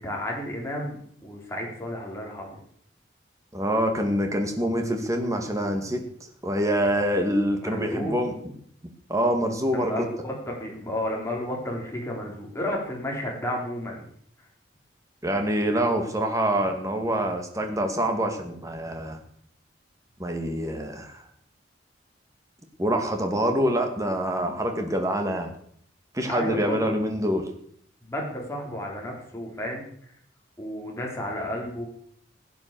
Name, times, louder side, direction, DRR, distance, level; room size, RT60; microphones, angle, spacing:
voice 1, 0.0-2.6 7.6-8.1 9.7-14.0 26.3-26.8 28.0-29.9 30.6-31.8, left 1 dB, 15° left, -1 dB, 4.3 m, -32 dB
voice 2, 3.5-6.0 6.4-8.3 9.1-10.1 15.2-19.2 20.2-21.2 22.8-25.5 26.1-27.4, equal, 15° right, 4 dB, 2.3 m, -25 dB
16.5 x 9.3 x 7.1 m, 0.65 s
head